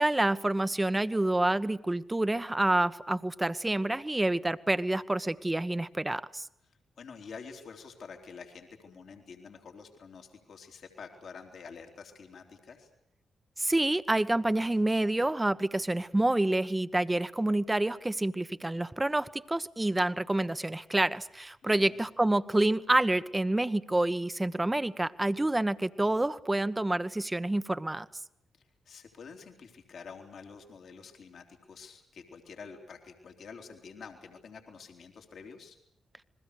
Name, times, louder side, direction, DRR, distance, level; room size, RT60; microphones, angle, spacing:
voice 1, 0.0-6.5 13.6-28.0, right 1 dB, 20° right, 14 dB, 1.2 m, -28 dB
voice 2, 7.0-12.9 21.6-21.9 28.8-35.8, left 5 dB, 70° left, 4 dB, 3.3 m, -48 dB
29.0 x 21.0 x 6.7 m, 0.78 s
supercardioid pair, 45°, 0 cm